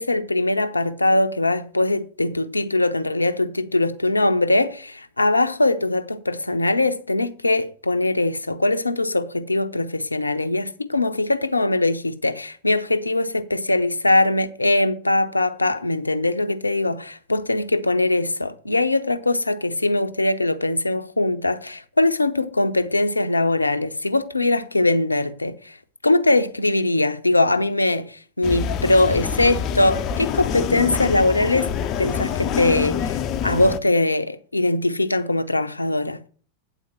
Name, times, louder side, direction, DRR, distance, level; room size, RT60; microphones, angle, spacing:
voice 1, 0.0-25.8 26.0-36.2, left 2 dB, 80° left, 0.6 m, -21 dB
sound 1, 28.4-33.8, left 8 dB, 35° left, 0.6 m, -26 dB
9.1 x 4.1 x 7.2 m
figure-of-eight pair, 90°, 0 cm